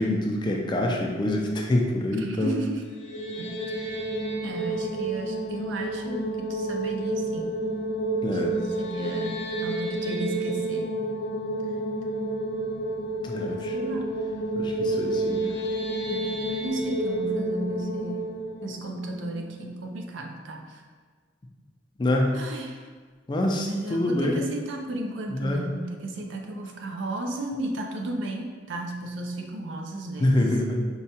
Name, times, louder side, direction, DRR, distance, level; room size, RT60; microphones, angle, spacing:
voice 1, 0.0-2.5 8.2-8.5 13.2-13.7 14.5-15.4 22.0-22.3 23.3-24.4 25.3-25.7 30.2-30.9, left 1 dB, 25° left, 1 dB, 0.3 m, -25 dB
voice 2, 2.1-2.9 3.4-4.0 4.4-7.6 8.3-11.0 13.4-14.2 15.4-15.7 16.1-18.3 18.6-20.8 22.3-22.8 23.7-30.5, right 2 dB, 90° right, 2 dB, 0.5 m, -34 dB
sound 1, 2.9-20.0, right 1 dB, 85° left, 0.5 m, -30 dB
4.6 x 2.2 x 2.8 m, 1.5 s
head